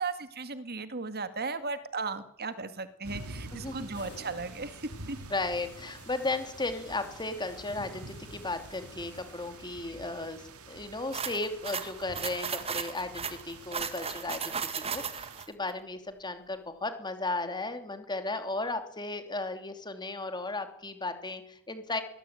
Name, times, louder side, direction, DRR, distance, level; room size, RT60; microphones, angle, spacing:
voice 1, 0.0-5.2, right 4 dB, 45° right, 11 dB, 1.9 m, -36 dB
sound 1, 3.0-15.4, right 2 dB, 80° right, 2.5 m, -47 dB
voice 2, 3.5-3.9 5.3-14.6 14.9-22.0, left 2 dB, 20° left, 8 dB, 3.0 m, -35 dB
sound 2, 3.9-10.0, left 4 dB, 50° left, 5.6 m, -54 dB
sound 3, 11.1-15.5, right 6 dB, 25° right, 2.0 m, -35 dB
23.0 x 19.5 x 8.9 m, 0.70 s
head